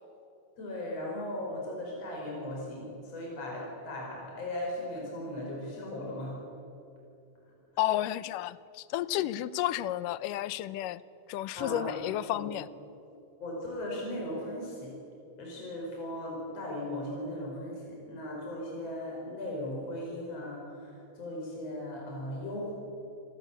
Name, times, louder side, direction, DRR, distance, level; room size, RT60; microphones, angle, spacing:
voice 1, 0.6-6.4 11.6-11.9 12.2-12.5 13.4-14.9 15.4-22.7, left 1 dB, 50° left, -2 dB, 5.9 m, -37 dB
voice 2, 7.8-11.0 11.3-12.7, left 14 dB, 85° left, 17 dB, 2.3 m, -32 dB
27.5 x 18.0 x 8.3 m, 2.8 s
omnidirectional pair, 3.8 m